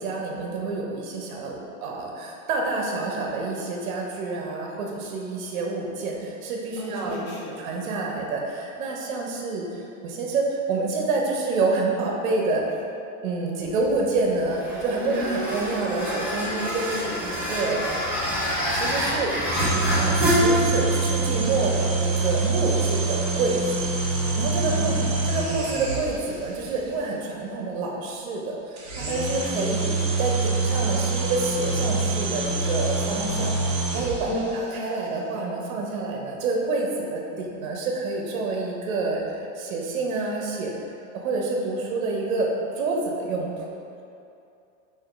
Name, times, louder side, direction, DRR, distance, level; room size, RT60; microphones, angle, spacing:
voice 1, 0.0-7.2 7.6-9.7 10.0-12.6 13.2-18.1 18.7-19.3 19.6-19.7 20.0-23.6 24.4-24.9 25.2-40.7 41.1-42.5 42.8-43.7, right 3 dB, 80° right, -1 dB, 0.6 m, -28 dB
voice 2, 6.8-7.6 15.0-15.3 24.7-25.3 34.3-34.5, equal, 80° left, -5 dB, 0.9 m, -33 dB
sound 1, 13.6-27.0, left 1 dB, 5° right, 0.3 m, -29 dB
sound 2, 19.5-26.4 28.8-34.5, right 3 dB, 35° right, 0.6 m, -25 dB
3.6 x 2.5 x 2.4 m, 2.6 s
supercardioid pair, 145°, 40 cm